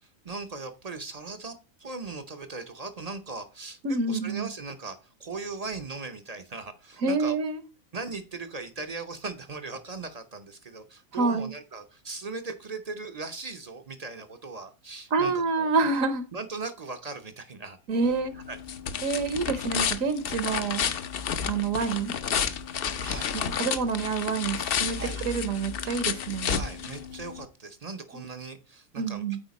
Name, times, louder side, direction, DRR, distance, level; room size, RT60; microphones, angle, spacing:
voice 1, 0.0-7.4 7.9-15.7 16.3-17.8 18.3-18.6 20.4-20.6 23.0-23.3 24.9-25.2 26.5-29.2, right 3 dB, 45° right, 8 dB, 0.5 m, -39 dB
voice 2, 3.8-4.5 7.0-7.6 11.1-11.5 15.1-16.2 17.9-18.3 19.0-20.9 21.5-22.1 23.3-26.6 29.0-29.4, right 4 dB, 65° right, 11 dB, 1.2 m, -27 dB
sound 1, 18.0-27.5, left 7 dB, 55° left, 0.6 m, -31 dB
8.9 x 4.3 x 4.0 m, 0.33 s
omnidirectional pair, 1.6 m